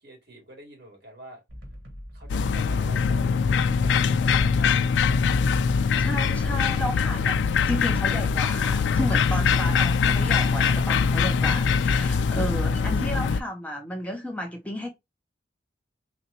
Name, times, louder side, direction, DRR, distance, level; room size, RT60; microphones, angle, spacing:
voice 1, 0.0-1.4 2.1-5.3 12.7-13.2, equal, 65° right, 2.4 m, -47 dB
sound 1, 1.5-12.7, equal, 80° right, 1.4 m, -42 dB
sound 2, 2.3-13.4, left 5 dB, 75° left, 0.3 m, -23 dB
voice 2, 6.0-14.9, equal, 5° left, 0.7 m, -32 dB
4.0 x 3.2 x 2.8 m
head